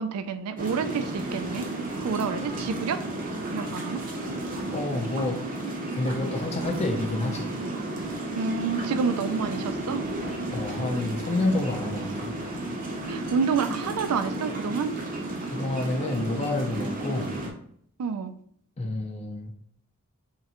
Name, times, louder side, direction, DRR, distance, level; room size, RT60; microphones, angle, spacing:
voice 1, 0.0-1.7 2.0-3.0 3.5-4.0 8.4-10.0 13.1-14.9 18.0-18.3, right 5 dB, 85° right, 11 dB, 0.4 m, -28 dB
sound 1, 0.6-17.5, right 1 dB, 40° right, 0.6 m, -33 dB
voice 2, 4.7-5.4 5.9-7.5 10.5-12.3 15.5-17.4 18.8-19.5, left 2 dB, 30° left, 2 dB, 0.4 m, -29 dB
3.6 x 3.1 x 2.9 m, 0.65 s
head